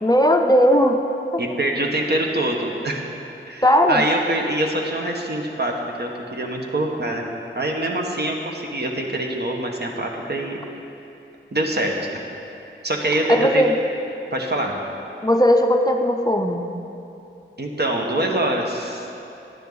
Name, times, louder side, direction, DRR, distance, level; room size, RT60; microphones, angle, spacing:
voice 1, 0.0-1.0 3.6-4.0 13.3-13.7 15.2-16.7, equal, 20° left, 4 dB, 0.5 m, -17 dB
voice 2, 1.4-3.0 3.5-10.6 11.5-11.9 12.8-13.6 14.3-14.8 17.6-19.1, right 1 dB, 55° right, 0 dB, 1.2 m, -24 dB
10.5 x 10.0 x 4.0 m, 2.7 s
wide cardioid pair, 60°, 21 cm